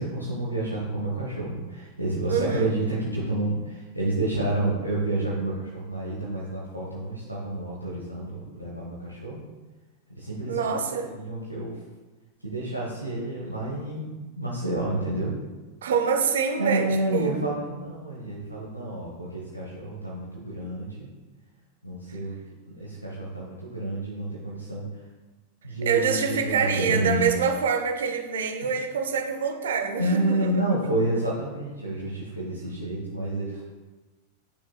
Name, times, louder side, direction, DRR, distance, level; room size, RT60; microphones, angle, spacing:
voice 1, 0.0-9.4 10.1-10.7 11.1-11.8 12.4-15.3 16.6-21.1 21.8-22.3 22.7-24.9 25.6-27.3 30.0-33.7, right 1 dB, 90° right, -6 dB, 1.1 m, -29 dB
voice 2, 2.3-2.7 10.5-11.1 15.8-17.4 25.8-30.9, right 6 dB, 65° right, 6 dB, 0.7 m, -26 dB
10.5 x 6.0 x 2.2 m, 1.2 s
figure-of-eight pair, 90°, 0 cm